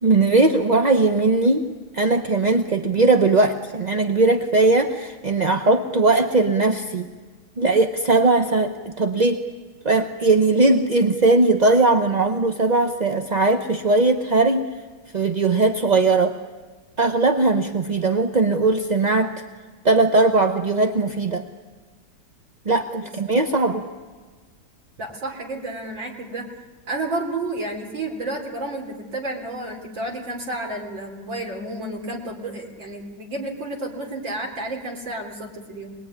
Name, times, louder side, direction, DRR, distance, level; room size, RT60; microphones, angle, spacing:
voice 1, 0.0-7.1 7.6-9.4 9.8-14.6 15.1-16.4 17.0-19.3 19.8-21.4 22.7-23.8, right 3 dB, 35° right, 6 dB, 0.7 m, -19 dB
voice 2, 25.0-26.5 26.9-36.0, right 2 dB, 85° right, 1 dB, 4.4 m, -31 dB
25.5 x 21.0 x 9.8 m, 1.4 s
omnidirectional pair, 2.0 m